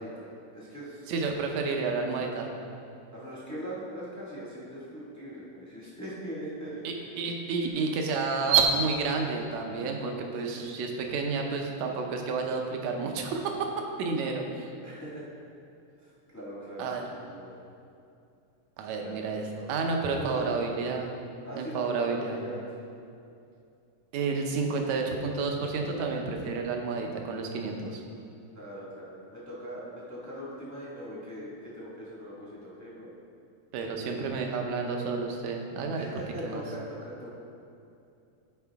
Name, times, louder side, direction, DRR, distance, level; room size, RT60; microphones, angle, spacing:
voice 1, 0.0-1.1 1.5-1.8 3.1-6.9 10.4-10.7 14.8-15.3 16.0-17.6 19.0-19.3 19.5-20.3 21.4-22.6 28.5-33.1 34.1-34.5 35.9-37.3, equal, 10° left, -7 dB, 0.7 m, -41 dB
voice 2, 1.1-2.5 6.8-13.7 14.0-14.7 16.8-17.0 18.8-21.1 21.6-22.4 24.1-28.0 33.7-36.1 36.4-36.6, right 4 dB, 75° right, 2 dB, 2.0 m, -30 dB
14.0 x 4.8 x 3.5 m, 2.6 s
omnidirectional pair, 3.4 m